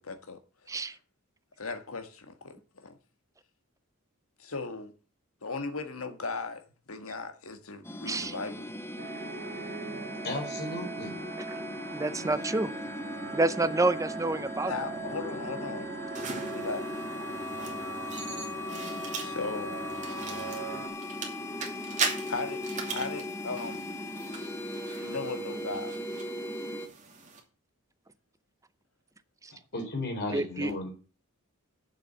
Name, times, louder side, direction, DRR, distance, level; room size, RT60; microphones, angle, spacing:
voice 1, 0.1-0.9 1.6-3.0 4.4-4.9 5.4-8.7 13.6-13.7 14.7-15.9 16.4-16.9 17.4-17.6 18.0-18.2 18.8-20.0 22.3-22.6 22.9-23.8 25.0-25.9, left 3 dB, 70° left, 1.6 m, -37 dB
sound 1, 7.8-26.9, left 1 dB, 10° left, 0.9 m, -38 dB
sound 2, 9.0-20.9, right 4 dB, 55° right, 1.7 m, -41 dB
voice 2, 10.2-11.2 29.7-30.9, left 2 dB, 50° left, 4.2 m, -34 dB
voice 3, 11.9-12.7 13.3-14.7 29.4-29.5 30.3-30.9, right 2 dB, 15° right, 0.6 m, -28 dB
sound 3, 16.2-27.4, right 5 dB, 35° right, 2.7 m, -40 dB
7.6 x 7.3 x 7.9 m
head